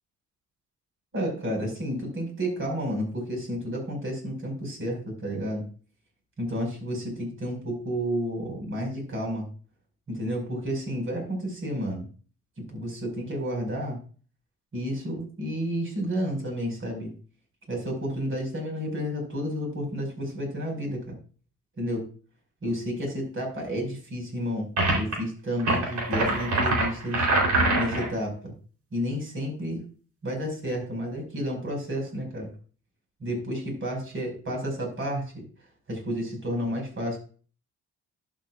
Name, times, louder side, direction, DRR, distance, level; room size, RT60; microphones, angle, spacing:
voice 1, 1.1-5.6 6.4-9.5 10.1-12.1 12.7-14.0 14.7-17.1 17.7-21.2 21.8-22.1 22.6-27.3 27.8-28.5 28.9-29.8 30.2-32.5 33.2-35.5 35.9-37.2, equal, 45° right, 1 dB, 5.4 m, -31 dB
sound 1, 24.8-25.1 25.6-28.1, right 2 dB, 70° right, 3.7 m, -24 dB
11.5 x 8.7 x 2.5 m, 0.40 s
cardioid pair, 90°, 30 cm